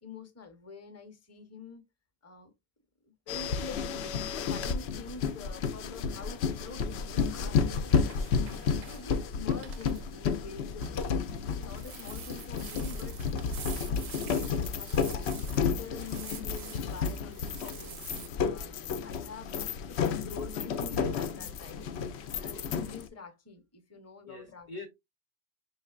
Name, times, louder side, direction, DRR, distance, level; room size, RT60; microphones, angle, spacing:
voice 1, 0.0-1.8 2.2-2.5 3.1-7.7 8.8-13.3 14.1-15.4 15.7-18.0 18.4-21.9 22.4-24.7, left 4 dB, 15° left, 0.7 m, -46 dB
sound 1, 3.3-23.1, left 6 dB, 85° left, 0.8 m, -32 dB
sound 2, 7.8-18.3, right 7 dB, 55° right, 0.4 m, -48 dB
voice 2, 22.2-22.7 24.2-24.9, left 3 dB, 50° left, 0.8 m, -45 dB
5.6 x 3.3 x 2.3 m
omnidirectional pair, 1.1 m